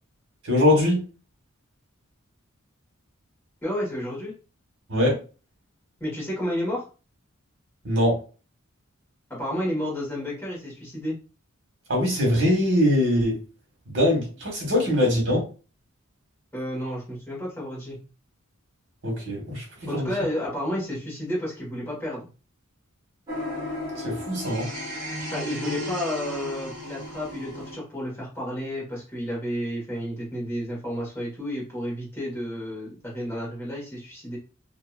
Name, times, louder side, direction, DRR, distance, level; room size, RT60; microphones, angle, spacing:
voice 1, 0.4-1.0 4.9-5.2 7.8-8.2 11.9-13.4 13.9-15.4 19.0-19.6 19.9-20.1 24.0-24.7, left 1 dB, 55° right, 1.3 m, -22 dB
voice 2, 3.6-4.3 6.0-6.9 9.3-11.2 14.8-14.9 16.5-18.0 19.9-22.3 25.3-34.4, equal, 10° left, 1.4 m, -31 dB
sound 1, 23.3-27.7, left 1 dB, 20° right, 1.2 m, -34 dB
2.8 x 2.7 x 2.4 m
head